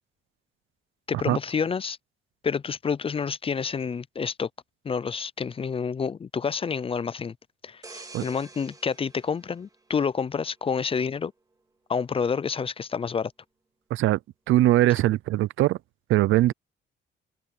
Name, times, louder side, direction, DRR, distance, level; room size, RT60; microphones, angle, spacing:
voice 1, 1.1-2.0 2.4-4.5 4.8-7.3 7.6-11.3 11.9-13.3, left 6 dB, 30° left, 0.4 m, -28 dB
sound 1, 7.8-10.5 11.0-11.2, right 3 dB, 20° right, 2.1 m, -48 dB
voice 2, 14.5-15.8 16.1-16.5, right 15 dB, 80° right, 0.6 m, -21 dB
cardioid pair, 90°, 20 cm